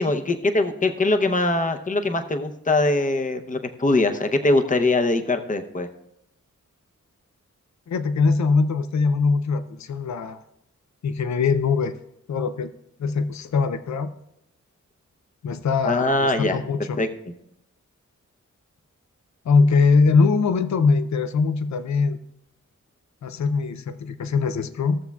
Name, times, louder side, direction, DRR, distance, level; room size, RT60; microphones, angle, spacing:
voice 1, 0.0-5.9 15.8-16.6 17.0-17.1, left 2 dB, 25° left, 6 dB, 0.7 m, -22 dB
voice 2, 7.9-10.4 11.0-11.9 12.3-12.7 13.0-14.1 15.4-17.0 19.5-22.2 23.2-25.0, left 4 dB, 65° left, 11 dB, 0.6 m, -22 dB
16.0 x 6.9 x 2.4 m, 0.82 s
wide cardioid pair, 75°, 31 cm